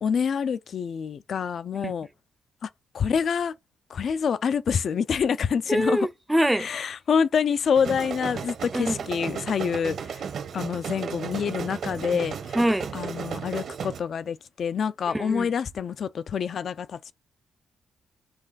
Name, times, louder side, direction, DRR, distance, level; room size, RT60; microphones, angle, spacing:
voice 1, 0.0-2.1 2.6-2.7 2.9-3.5 3.9-6.1 6.6-10.3 10.5-12.6 12.9-17.1, left 7 dB, 50° left, 0.5 m, -27 dB
voice 2, 5.7-6.7 8.7-9.0 12.5-12.9 15.1-15.5, right 1 dB, 5° right, 0.5 m, -24 dB
sound 1, 7.7-14.0, right 6 dB, 60° right, 1.1 m, -34 dB
7.6 x 3.3 x 4.0 m
cardioid pair, 135°, 0 cm